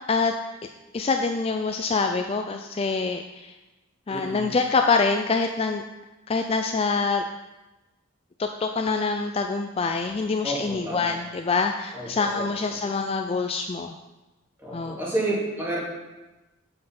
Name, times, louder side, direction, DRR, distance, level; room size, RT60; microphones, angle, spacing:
voice 1, 0.9-3.5 4.1-5.8 6.3-7.2 8.4-13.9 14.7-15.0, left 4 dB, 30° left, 5 dB, 0.3 m, -25 dB
voice 2, 4.1-4.5 10.4-11.1 11.9-12.8 14.6-15.8, right 1 dB, 10° right, -6 dB, 2.4 m, -30 dB
7.8 x 5.4 x 5.8 m, 1.1 s
head